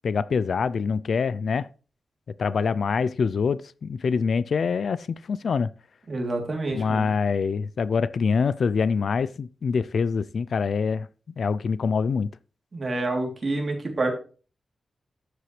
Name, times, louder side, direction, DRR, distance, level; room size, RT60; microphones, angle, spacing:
voice 1, 0.0-1.7 2.4-5.7 6.7-11.1 11.4-12.3, left 5 dB, 60° left, 0.4 m, -25 dB
voice 2, 6.1-7.1 12.7-14.1, right 2 dB, 35° right, 3.0 m, -28 dB
12.5 x 8.0 x 3.2 m
wide cardioid pair, 165°, 0 cm